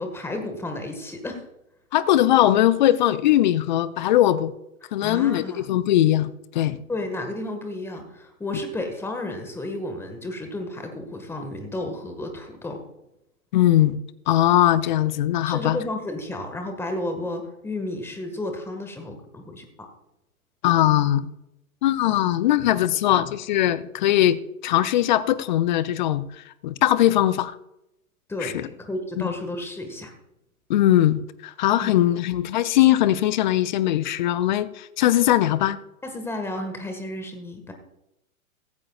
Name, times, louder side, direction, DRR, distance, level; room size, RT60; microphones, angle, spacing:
voice 1, 0.0-1.5 4.8-5.6 6.9-12.8 15.5-19.9 28.3-30.1 31.8-32.0 36.0-37.7, left 1 dB, 5° left, 5 dB, 1.6 m, -32 dB
voice 2, 1.9-4.5 4.9-6.8 13.5-14.0 14.3-15.8 20.6-21.3 21.8-24.4 24.6-26.2 26.6-27.6 28.4-28.7 29.2-29.3 30.7-35.8, left 13 dB, 35° left, 16 dB, 0.6 m, -20 dB
16.0 x 15.0 x 2.4 m, 0.88 s
figure-of-eight pair, 115°, 43 cm